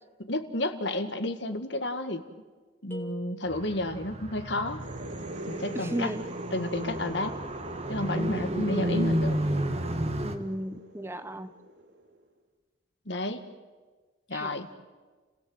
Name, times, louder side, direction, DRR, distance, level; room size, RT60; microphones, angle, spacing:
voice 1, 0.2-2.2 2.8-4.8 5.5-6.1 6.5-7.3 7.9-9.4 13.0-13.4 14.3-14.7, left 1 dB, 70° left, 8 dB, 1.8 m, -31 dB
sound 1, 2.9-4.1, right 3 dB, 10° left, 2.3 m, -43 dB
Car, 3.5-10.3, right 1 dB, 35° right, 1.6 m, -32 dB
sound 2, 4.7-12.2, right 1 dB, 75° right, 2.5 m, -43 dB
voice 2, 5.7-6.3 10.2-11.5 14.3-14.5, right 1 dB, 15° right, 11 dB, 0.8 m, -35 dB
30.0 x 17.5 x 8.0 m, 1.4 s
head